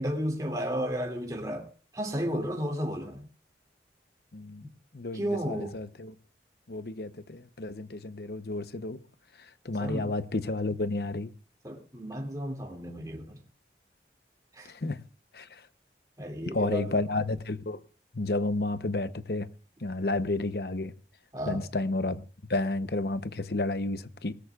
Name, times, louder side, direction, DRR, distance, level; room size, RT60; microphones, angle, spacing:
voice 1, 0.0-1.7 1.9-3.3 5.1-5.8 9.8-10.1 11.6-13.4 14.5-14.7 16.2-17.0 21.3-21.6, equal, 20° right, 2.5 m, -33 dB
voice 2, 4.3-6.1 6.7-9.0 9.6-11.3 14.6-15.0 15.3-15.6 16.5-17.8 18.1-19.5 19.8-20.9 21.5-22.2 22.5-24.3, left 2 dB, 65° left, 0.9 m, -31 dB
20.5 x 18.0 x 2.4 m
head